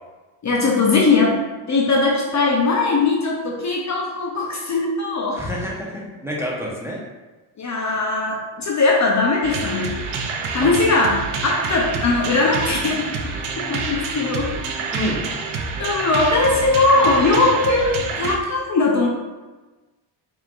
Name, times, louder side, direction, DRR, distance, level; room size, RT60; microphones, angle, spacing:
voice 1, 0.4-1.4 1.7-5.4 7.6-10.0 10.5-13.1 13.7-14.5 15.8-19.1, left 3 dB, 35° left, -2 dB, 0.7 m, -19 dB
voice 2, 5.3-7.0 10.6-10.7 14.9-15.3, equal, 5° right, -4 dB, 0.9 m, -28 dB
sound 1, 9.4-18.4, right 4 dB, 70° right, 0.7 m, -27 dB
4.5 x 3.8 x 2.4 m, 1.2 s
cardioid pair, 95°, 50 cm